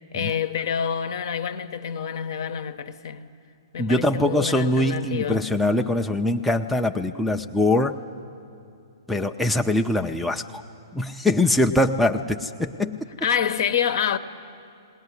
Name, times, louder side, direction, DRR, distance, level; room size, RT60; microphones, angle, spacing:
voice 1, 0.1-3.3 3.7-5.5 13.2-14.2, left 8 dB, 55° left, 0.9 m, -27 dB
voice 2, 3.8-7.9 9.1-10.6 10.9-13.0, left 1 dB, ahead, 0.5 m, -23 dB
19.5 x 18.5 x 9.8 m
figure-of-eight pair, 120°, 2 cm